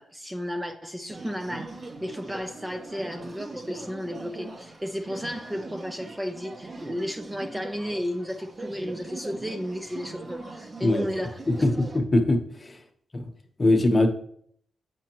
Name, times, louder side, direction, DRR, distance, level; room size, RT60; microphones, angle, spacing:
voice 1, 0.0-11.4, equal, 10° right, 0.5 m, -33 dB
sound 1, 1.1-12.0, right 2 dB, 35° right, 0.9 m, -41 dB
voice 2, 11.5-12.8 13.1-13.3 13.6-14.1, left 2 dB, 30° left, 1.0 m, -22 dB
7.8 x 6.2 x 3.0 m
cardioid pair, 85°, 0 cm